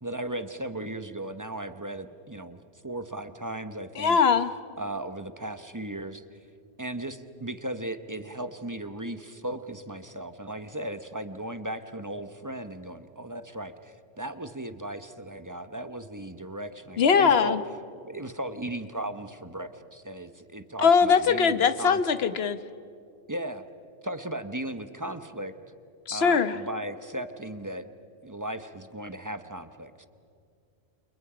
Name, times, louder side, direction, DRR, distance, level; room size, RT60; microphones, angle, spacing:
voice 1, 0.0-4.2 4.8-6.4 6.8-17.6 18.0-22.0 23.3-23.6 24.0-25.5 26.1-27.8 28.2-30.0, right 1 dB, 15° right, 10 dB, 0.9 m, -36 dB
voice 2, 4.0-4.5 17.0-17.6 20.8-22.6 26.1-26.6, left 6 dB, 60° left, 12 dB, 1.2 m, -21 dB
29.5 x 28.5 x 5.1 m, 2.5 s
omnidirectional pair, 1.2 m